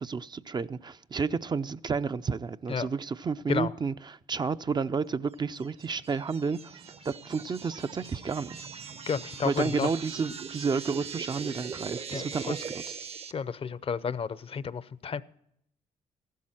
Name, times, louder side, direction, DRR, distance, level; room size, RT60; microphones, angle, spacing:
voice 1, 0.0-8.7 9.4-13.0, right 5 dB, 30° right, 0.5 m, -31 dB
sound 1, 5.6-13.3, right 6 dB, 50° right, 0.8 m, -41 dB
voice 2, 9.1-9.9 12.1-12.4 13.3-15.2, left 6 dB, 45° left, 0.6 m, -31 dB
14.5 x 12.0 x 4.3 m
supercardioid pair, 65°, 14 cm